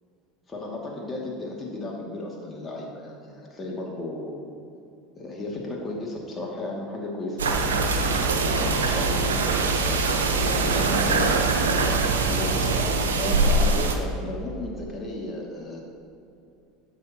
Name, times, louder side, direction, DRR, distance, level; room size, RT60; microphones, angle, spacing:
voice 1, 0.5-4.4 5.2-7.4 8.4-9.2 9.6-11.3 12.2-15.8, left 2 dB, 20° left, -2 dB, 2.3 m, -34 dB
sound 1, 7.4-13.9, right 3 dB, 80° right, 0.9 m, -23 dB
12.5 x 8.0 x 2.9 m, 2.6 s
hypercardioid pair, 80°, 0 cm